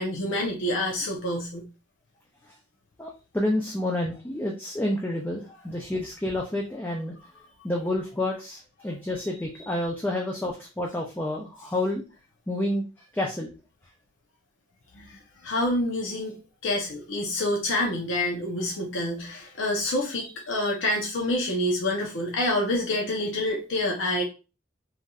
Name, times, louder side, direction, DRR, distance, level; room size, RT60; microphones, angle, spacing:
voice 1, 0.0-1.6 9.7-9.8 14.9-16.4 16.6-24.2, left 1 dB, 85° left, -1 dB, 0.7 m, -27 dB
voice 2, 3.0-7.1 7.6-12.0 12.5-12.9 13.1-13.5, left 1 dB, 10° left, -1 dB, 0.4 m, -29 dB
3.3 x 2.6 x 2.3 m, 0.31 s
head